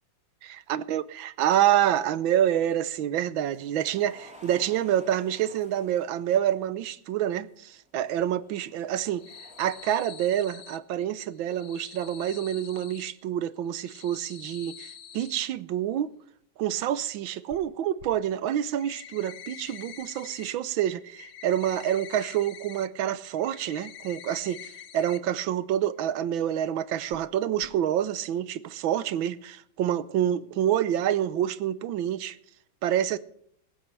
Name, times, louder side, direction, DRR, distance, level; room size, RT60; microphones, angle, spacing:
voice 1, 0.4-9.2 9.6-16.1 16.6-32.4 32.8-33.2, right 11 dB, 90° right, 1.6 m, -27 dB
sound 1, 3.5-6.8 7.7-9.9, left 1 dB, 5° right, 3.6 m, -53 dB
sound 2, 9.0-10.8 11.4-13.1 13.7-15.4 17.5-17.6 18.0-18.1 18.5-20.5 20.8-22.9 23.2-25.2 25.5-25.6 26.0-26.1 27.1-27.3 27.6-27.7, left 9 dB, 90° left, 1.9 m, -46 dB
18.0 x 15.0 x 3.3 m
omnidirectional pair, 2.1 m